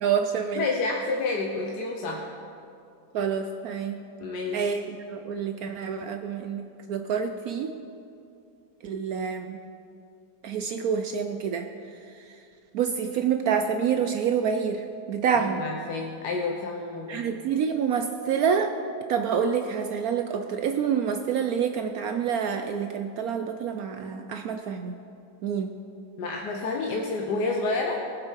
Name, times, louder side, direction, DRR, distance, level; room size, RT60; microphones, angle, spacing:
voice 1, 0.0-0.6 3.1-4.0 4.5-7.7 8.8-9.6 10.4-11.7 12.7-15.6 17.1-18.7 19.1-25.0 25.4-25.7, right 7 dB, 70° right, 6 dB, 0.9 m, -27 dB
voice 2, 0.5-2.3 4.2-4.7 15.3-17.3 26.2-28.0, left 3 dB, 65° left, 0 dB, 1.4 m, -29 dB
18.5 x 7.6 x 4.6 m, 2.5 s
omnidirectional pair, 2.0 m